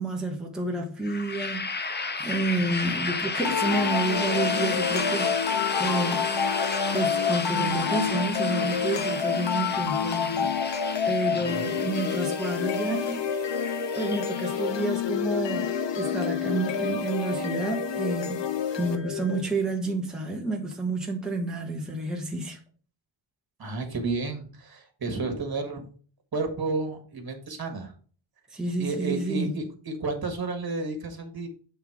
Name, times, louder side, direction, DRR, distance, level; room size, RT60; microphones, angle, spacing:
voice 1, 0.0-6.3 6.9-13.6 14.0-22.6 28.5-29.5, right 2 dB, ahead, 1.2 m, -30 dB
sound 1, 1.0-14.8, left 4 dB, 25° left, 0.6 m, -32 dB
sound 2, 3.5-19.4, left 7 dB, 75° left, 0.8 m, -28 dB
voice 2, 11.3-11.7 23.6-25.9 26.3-27.9 28.8-31.5, right 3 dB, 55° right, 1.8 m, -32 dB
8.1 x 3.6 x 4.8 m
wide cardioid pair, 165°, 44 cm